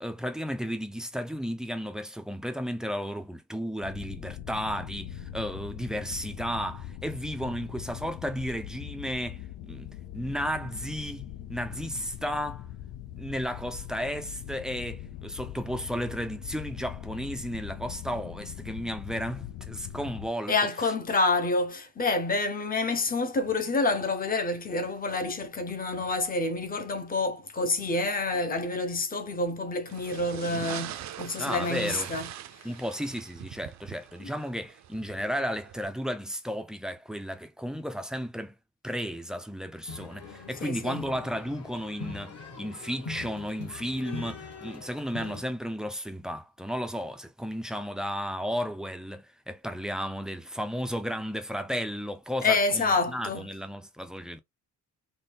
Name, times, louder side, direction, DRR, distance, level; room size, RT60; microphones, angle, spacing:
voice 1, 0.0-12.7 13.2-20.9 31.4-32.1 32.6-38.6 38.8-54.4, equal, ahead, 0.3 m, -34 dB
sound 1, 3.8-20.3, left 11 dB, 80° left, 0.5 m, -41 dB
voice 2, 20.5-32.3 32.6-32.7 34.2-34.3 40.6-41.0 52.4-53.5, left 3 dB, 30° left, 0.7 m, -28 dB
sound 2, 29.8-35.8, right 11 dB, 60° right, 0.5 m, -42 dB
sound 3, 39.9-45.4, left 4 dB, 50° left, 1.5 m, -42 dB
4.0 x 2.3 x 3.4 m
cardioid pair, 150°, 31 cm